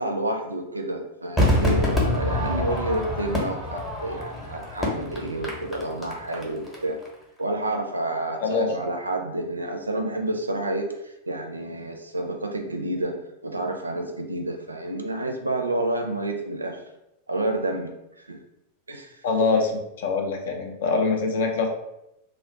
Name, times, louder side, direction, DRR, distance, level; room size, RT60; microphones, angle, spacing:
voice 1, 0.0-7.0 7.4-13.2 13.4-16.8 17.3-17.9 18.2-18.4 18.9-19.2, right 1 dB, 80° right, 3 dB, 0.4 m, -29 dB
Crowd / Fireworks, 1.4-6.8 7.0-7.1, left 1 dB, 10° left, 0.8 m, -26 dB
voice 2, 8.4-8.7 19.2-21.7, left 4 dB, 60° left, 2 dB, 0.5 m, -24 dB
2.4 x 2.0 x 3.9 m, 0.86 s
figure-of-eight pair, 90°, 0 cm